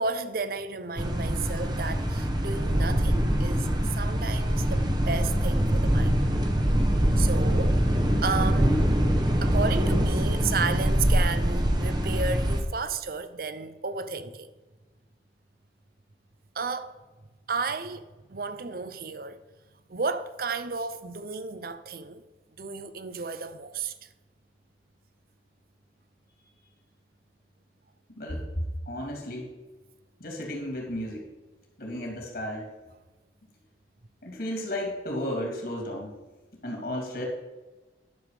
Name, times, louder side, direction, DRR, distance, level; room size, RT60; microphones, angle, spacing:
voice 1, 0.0-6.2 7.2-7.9 8.2-8.9 9.4-14.5 16.5-17.0 17.5-19.4 19.9-22.2 22.6-24.1, right 4 dB, 55° right, 0.7 m, -33 dB
sound 1, 1.0-12.6, equal, 25° right, 1.0 m, -24 dB
voice 2, 28.2-29.5 30.2-31.3 31.8-32.7 34.2-36.1 36.6-37.2, left 1 dB, 55° left, 2.8 m, -33 dB
11.0 x 7.1 x 4.9 m
head